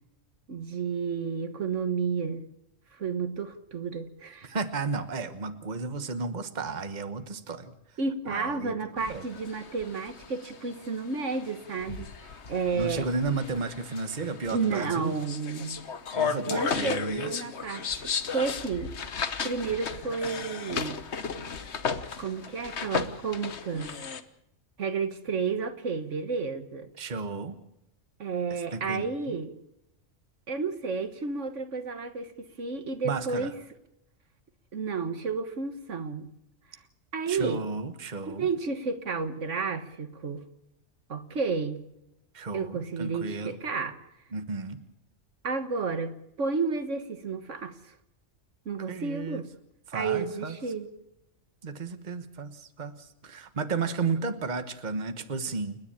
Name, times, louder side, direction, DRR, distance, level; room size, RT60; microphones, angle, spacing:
voice 1, 0.5-2.4 2.9-4.5 8.0-12.1 12.5-13.1 14.5-15.8 16.4-18.9 19.4-21.0 22.2-24.0 24.8-26.9 28.2-29.6 30.5-33.5 34.7-36.3 37.1-37.6 38.3-40.4 41.1-41.9 42.5-44.0 45.4-46.1 46.4-47.9 48.6-49.5 49.9-50.9, right 5 dB, 70° right, 1.7 m, -31 dB
voice 2, 4.4-7.7 8.3-8.7 9.1-9.2 12.7-15.1 16.1-17.3 27.0-27.6 28.5-29.4 33.0-33.5 37.3-38.5 42.3-43.5 44.3-44.8 48.9-49.4 49.9-50.6 51.6-55.8, right 4 dB, 35° right, 1.4 m, -33 dB
sound 1, 9.0-24.2, left 6 dB, 60° left, 1.4 m, -35 dB
29.0 x 10.5 x 8.7 m
omnidirectional pair, 1.3 m